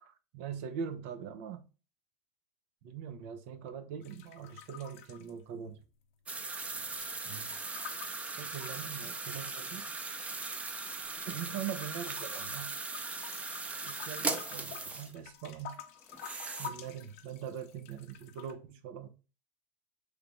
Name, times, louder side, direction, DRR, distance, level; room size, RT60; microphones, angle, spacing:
voice 1, 0.0-1.6 2.8-5.8 7.2-7.5 8.4-9.8 11.2-12.7 13.8-15.8 16.6-19.1, right 8 dB, 65° right, 0.6 m, -42 dB
sound 1, 4.0-6.1 6.3-9.7 10.3-11.3 11.6-18.5, left 9 dB, 70° left, 0.6 m, -50 dB
sound 2, 6.3-15.1 16.1-16.7, right 3 dB, 15° right, 0.5 m, -39 dB
3.2 x 3.1 x 2.5 m
hypercardioid pair, 100°, 8 cm